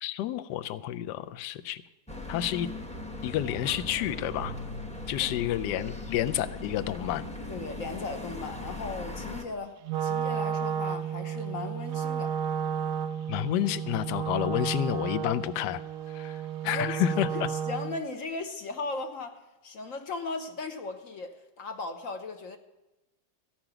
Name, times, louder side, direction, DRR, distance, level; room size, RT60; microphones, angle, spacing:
voice 1, 0.0-1.8 2.3-2.7 3.2-4.6 5.1-7.3 13.3-15.8 16.1-17.5, left 12 dB, 70° left, 1.2 m, -30 dB
sound 1, 2.1-9.4, left 1 dB, 5° left, 0.6 m, -39 dB
voice 2, 7.5-12.4 16.6-22.6, left 3 dB, 55° left, 1.1 m, -37 dB
Wind instrument woodwind instrument, 9.8-18.0, right 8 dB, 85° right, 0.7 m, -32 dB
15.0 x 6.0 x 8.9 m
omnidirectional pair, 2.0 m